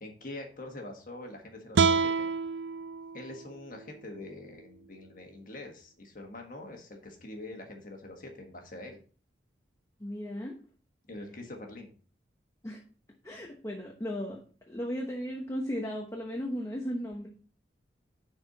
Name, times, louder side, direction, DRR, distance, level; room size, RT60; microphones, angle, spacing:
voice 1, 0.0-2.3 3.1-9.0 11.1-11.9, left 2 dB, 45° left, 2 dB, 1.6 m, -44 dB
sound 1, 1.7-4.9, right 5 dB, 75° right, 0.4 m, -30 dB
voice 2, 10.0-10.5 12.6-12.8 13.2-14.4 14.7-17.3, equal, 15° left, 0 dB, 1.0 m, -35 dB
10.5 x 4.5 x 4.1 m, 0.40 s
head